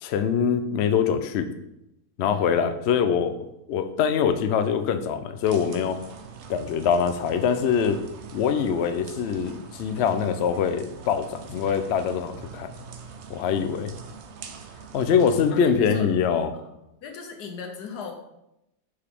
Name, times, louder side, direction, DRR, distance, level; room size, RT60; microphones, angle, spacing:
voice 1, 0.0-1.5 2.2-3.4 3.7-6.1 6.5-8.0 8.3-12.7 13.3-13.9 14.9-16.6, left 7 dB, 70° left, 9 dB, 0.6 m, -24 dB
voice 2, 2.3-2.6 15.5-16.1 16.5-16.6 17.0-18.1, left 5 dB, 90° left, 4 dB, 1.5 m, -37 dB
sound 1, 5.4-15.5, right 6 dB, 60° right, 0.8 m, -43 dB
6.7 x 4.8 x 3.5 m, 0.86 s
omnidirectional pair, 1.7 m